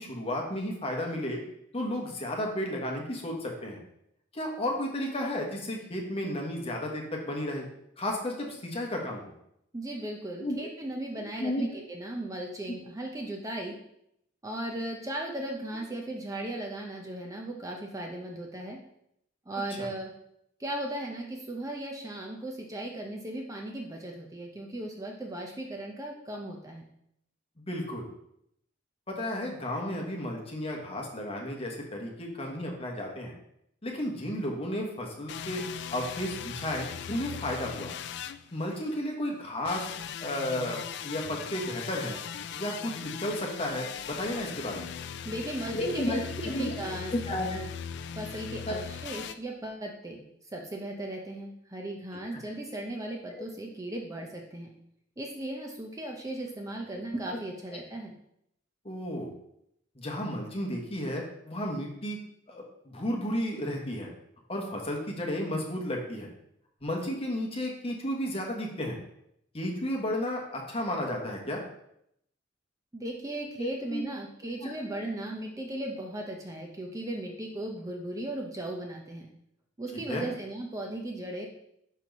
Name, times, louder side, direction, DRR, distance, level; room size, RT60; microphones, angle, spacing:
voice 1, 0.0-1.4 1.7-3.8 4.3-7.7 8.0-9.3 10.4-10.7 11.4-11.7 19.8-19.9 27.6-28.1 29.1-33.3 33.8-35.6 35.9-37.9 38.5-39.9 40.2-42.2 42.5-44.9 45.7-46.7 47.1-47.6 48.7-48.8 53.3-53.4 57.3-57.4 57.7-57.8 58.8-59.3 59.9-62.2 62.5-64.1 64.5-66.3 66.8-69.0 69.5-71.6 73.6-74.0 74.6-74.7 79.9-80.2, left 1 dB, 30° left, 0 dB, 1.1 m, -33 dB
voice 2, 9.7-13.8 14.4-18.8 19.5-20.1 20.6-26.8 45.2-46.3 46.6-47.1 48.2-50.2 50.5-54.7 55.2-58.1 72.9-79.3 79.8-81.5, right 1 dB, 15° right, 0 dB, 0.6 m, -37 dB
sound 1, 35.3-39.0 39.6-49.3, left 8 dB, 60° left, 0.3 m, -39 dB
4.5 x 4.4 x 5.3 m, 0.76 s
head